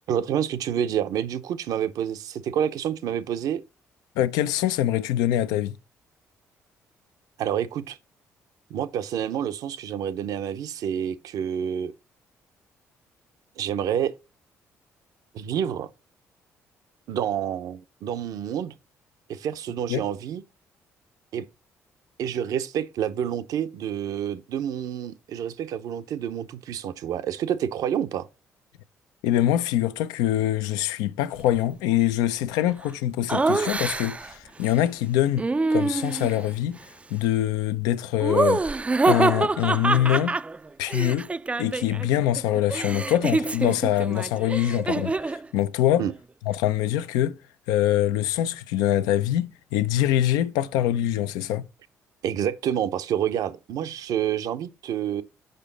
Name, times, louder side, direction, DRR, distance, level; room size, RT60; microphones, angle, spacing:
voice 1, 0.1-3.6 7.4-8.0 8.7-11.9 13.6-14.1 15.3-15.9 17.1-18.7 19.3-20.4 21.3-21.4 22.2-28.3 46.0-46.1 52.2-55.2, right 9 dB, 70° right, 0.6 m, -28 dB
voice 2, 4.2-5.7 19.9-20.0 29.2-35.4 35.7-36.8 37.1-38.6 39.0-40.4 40.8-41.3 41.6-46.1 46.5-47.4 47.7-51.6, left 12 dB, 85° left, 0.5 m, -24 dB
Laughter, 33.3-34.3 35.4-36.4 38.2-42.1 42.3-45.4, right 3 dB, 20° right, 0.3 m, -25 dB
6.7 x 5.1 x 3.9 m
supercardioid pair, 55°, 6 cm